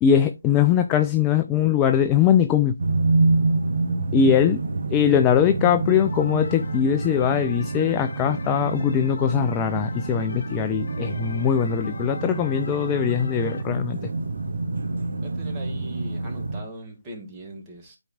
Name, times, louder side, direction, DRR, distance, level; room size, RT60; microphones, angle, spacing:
voice 1, 0.0-2.8 4.1-4.6 4.9-14.0, left 9 dB, 15° left, 0.4 m, -21 dB
sound 1, 2.8-16.6, right 3 dB, 60° right, 1.0 m, -27 dB
voice 2, 4.2-4.5 15.2-18.0, right 1 dB, 15° right, 1.9 m, -40 dB
sound 2, 5.9-13.6, left 3 dB, 55° left, 1.1 m, -40 dB
12.0 x 4.4 x 2.4 m
figure-of-eight pair, 155°, 0 cm